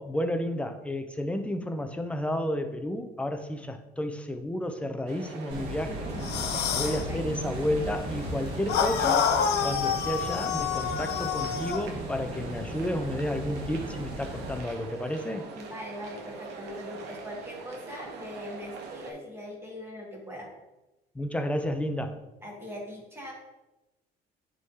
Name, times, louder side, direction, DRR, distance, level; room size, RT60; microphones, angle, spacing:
voice 1, 0.0-6.1 6.7-9.3 9.6-15.4 21.1-22.2, left 1 dB, 5° left, 6 dB, 0.6 m, -31 dB
sound 1, 5.1-19.1, right 5 dB, 80° right, 1.0 m, -43 dB
sound 2, 5.5-14.6, right 1 dB, 30° right, 1.8 m, -37 dB
voice 2, 5.9-6.3 6.5-7.5 15.5-20.5 22.4-23.3, left 1 dB, 15° right, -3 dB, 2.0 m, -41 dB
sound 3, 6.2-7.0 8.7-11.8, left 7 dB, 80° left, 0.7 m, -27 dB
9.3 x 3.7 x 2.8 m, 1.0 s
cardioid pair, 110°, 17 cm